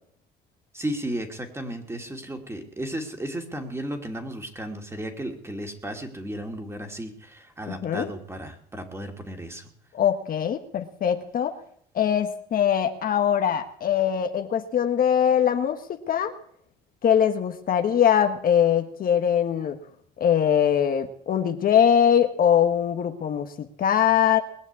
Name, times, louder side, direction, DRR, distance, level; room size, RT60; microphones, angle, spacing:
voice 1, 0.7-9.7, right 1 dB, 15° right, 4 dB, 2.9 m, -34 dB
voice 2, 7.7-8.1 10.0-11.5 11.9-16.3 17.0-19.8 20.2-24.4, left 9 dB, 50° left, 6 dB, 1.3 m, -22 dB
21.0 x 7.2 x 8.4 m, 0.66 s
supercardioid pair, 90°, 19 cm